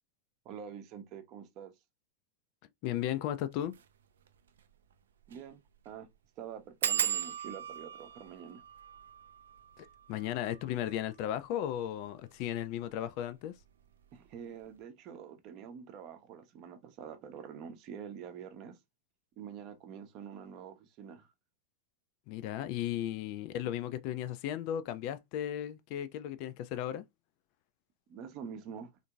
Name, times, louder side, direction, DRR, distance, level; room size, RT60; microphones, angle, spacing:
voice 1, 0.4-1.7 5.3-5.6 5.8-6.1 6.4-8.6 14.1-18.8 19.4-21.3 28.1-28.9, right 8 dB, 40° right, 0.7 m, -46 dB
voice 2, 2.8-3.7 9.8-13.5 22.3-27.0, left 11 dB, 45° left, 0.4 m, -35 dB
sound 1, 3.6-3.8 4.3-4.4 4.6-4.7 5.2-5.5 5.7-5.8 6.8-12.1 12.8-13.3 13.6-14.0 14.2-14.3, right 9 dB, 65° right, 0.4 m, -38 dB
3.6 x 2.6 x 2.2 m
figure-of-eight pair, 90°, 0 cm